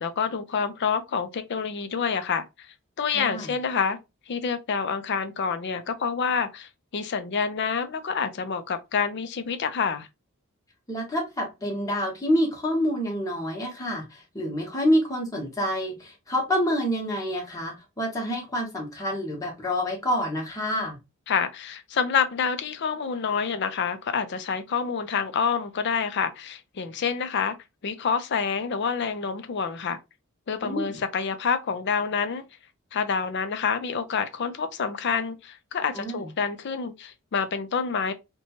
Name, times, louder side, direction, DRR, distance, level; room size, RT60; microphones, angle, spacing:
voice 1, 0.0-2.5 3.0-4.0 4.3-10.1 21.3-27.5 27.8-30.0 30.5-32.4 32.9-38.1, left 6 dB, 55° left, 0.4 m, -27 dB
voice 2, 3.1-3.5 10.9-21.0 30.6-31.0 35.9-36.3, equal, 15° left, 0.9 m, -27 dB
2.8 x 2.2 x 2.8 m
head